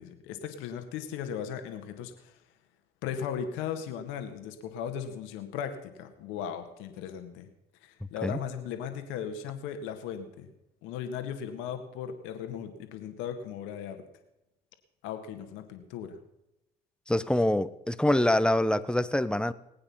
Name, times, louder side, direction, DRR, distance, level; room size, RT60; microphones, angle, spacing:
voice 1, 0.0-2.4 3.0-7.5 7.8-10.5 10.8-14.0 15.0-16.2, left 8 dB, 80° left, 6 dB, 1.8 m, -37 dB
voice 2, 17.1-19.5, left 1 dB, 5° left, 14 dB, 1.0 m, -25 dB
20.0 x 8.9 x 5.7 m, 0.89 s
hypercardioid pair, 55°, 20 cm